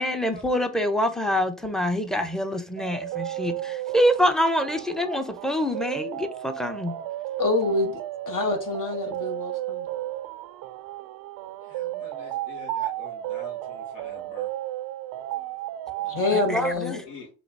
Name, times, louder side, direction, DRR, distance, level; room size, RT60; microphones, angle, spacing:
voice 1, 0.0-6.9 16.3-17.0, equal, ahead, 0.7 m, -25 dB
sound 1, 2.8-16.7, right 14 dB, 55° right, 0.5 m, -33 dB
voice 2, 7.4-7.9 8.3-9.8 16.1-17.0, left 3 dB, 45° left, 1.1 m, -26 dB
voice 3, 11.6-14.5 16.0-16.2 17.0-17.3, left 3 dB, 65° left, 1.6 m, -45 dB
3.9 x 2.6 x 4.6 m
hypercardioid pair, 65°, 44 cm